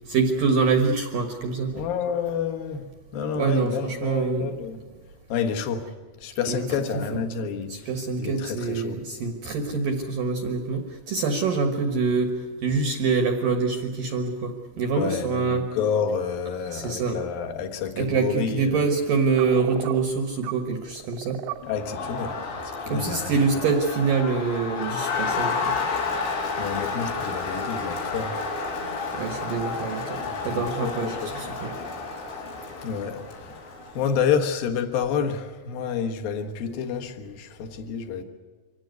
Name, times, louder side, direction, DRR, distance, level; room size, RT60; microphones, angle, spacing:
voice 1, 0.1-1.8 3.4-4.5 6.5-6.6 6.9-7.2 7.7-15.7 16.7-17.2 18.0-21.4 22.9-25.8 29.1-31.7, right 4 dB, 70° right, 6 dB, 2.1 m, -25 dB
voice 2, 1.7-2.8 3.1-4.8 5.3-5.9 6.2-7.9 8.2-9.0 14.9-18.9 21.7-22.4 22.6-23.6 26.6-28.4 30.4-31.4 32.8-33.7 33.9-38.2, left 7 dB, 65° left, 4 dB, 2.4 m, -29 dB
sound 1, 19.2-20.1 20.4-20.5 20.8-21.6, right 15 dB, 90° right, 3.8 m, -35 dB
Crowd, 21.6-34.2, left 4 dB, 85° left, 7.2 m, -31 dB
25.0 x 18.0 x 9.4 m, 1.4 s
omnidirectional pair, 6.0 m